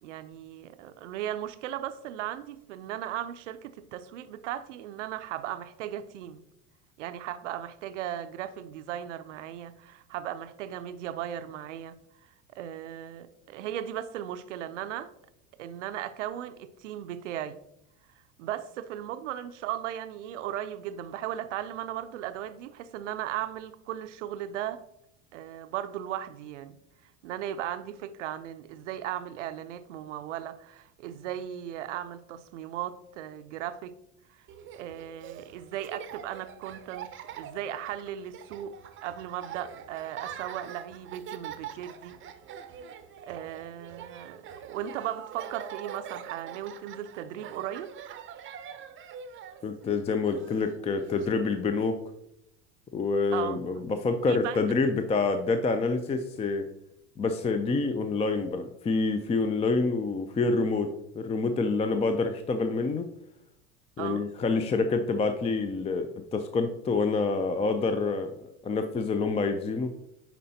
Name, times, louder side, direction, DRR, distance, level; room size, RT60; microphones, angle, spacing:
voice 1, 0.0-6.4 7.0-15.1 15.6-17.6 18.4-24.8 25.3-26.8 27.0-34.0 34.3-34.5 34.7-42.2 43.2-47.9 53.3-53.6 54.3-54.6 64.0-64.2, right 11 dB, 85° right, 0.5 m, -37 dB
Laughter, 34.5-51.3, right 9 dB, 35° right, 0.6 m, -44 dB
voice 2, 49.6-52.0 52.9-56.7 57.2-63.1 64.0-68.3 68.6-69.9, left 4 dB, 20° left, 0.4 m, -27 dB
10.0 x 4.3 x 2.7 m
hypercardioid pair, 95°, 35 cm